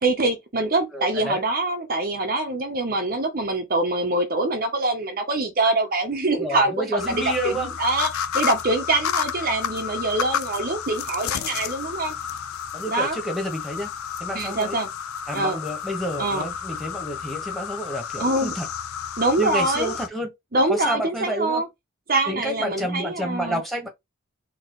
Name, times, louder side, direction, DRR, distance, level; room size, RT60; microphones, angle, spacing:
voice 1, 0.0-12.2 12.9-13.2 14.3-14.9 15.3-15.6 16.2-16.5 18.2-18.5 19.2-19.9 20.5-21.7 22.1-23.6, right 2 dB, 45° right, 0.9 m, -24 dB
voice 2, 0.9-1.4 6.4-7.7 12.7-13.9 14.2-14.8 15.3-18.7 19.4-20.3 20.7-21.6 22.3-23.9, equal, ahead, 1.5 m, -29 dB
sound 1, 7.0-20.1, left 8 dB, 90° left, 0.5 m, -31 dB
4.2 x 3.1 x 3.2 m
head